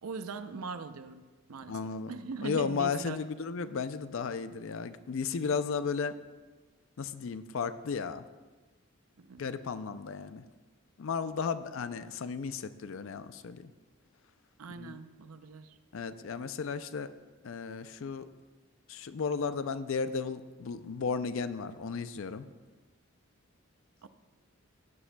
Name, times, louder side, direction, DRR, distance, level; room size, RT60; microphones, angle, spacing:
voice 1, 0.0-3.2 9.2-9.5 14.6-15.8 24.0-24.1, right 4 dB, 90° right, 11 dB, 0.6 m, -41 dB
voice 2, 1.7-2.1 2.4-6.2 7.0-8.2 9.4-10.4 11.0-13.7 14.8-15.0 15.9-17.1 17.4-18.3 18.9-22.5, left 5 dB, 65° left, 12 dB, 0.4 m, -34 dB
16.0 x 9.7 x 2.2 m, 1.3 s
head